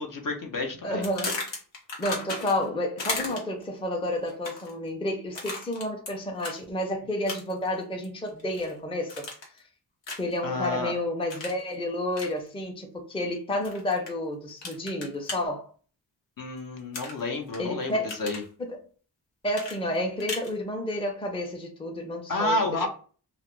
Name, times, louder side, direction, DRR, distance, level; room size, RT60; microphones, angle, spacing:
voice 1, 0.0-1.0 10.4-10.9 16.4-18.4 22.3-22.9, left 2 dB, 50° left, 0.6 m, -30 dB
voice 2, 0.8-1.4 2.0-9.3 10.2-15.7 17.6-18.1 18.6-18.8 19.4-22.6, left 1 dB, 15° left, 0.5 m, -30 dB
sound 1, 1.0-2.7 3.0-3.6 4.3-4.7 5.3-6.1 6.4-6.6 7.3-7.7 8.0-8.7 9.1-9.6 10.0-10.4 11.3-11.6 12.1-12.3 13.6-14.1 14.6-15.4 16.9-17.6 17.9-18.5 19.5-20.5, left 2 dB, 90° left, 0.9 m, -35 dB
2.4 x 2.0 x 3.0 m
wide cardioid pair, 85°, 42 cm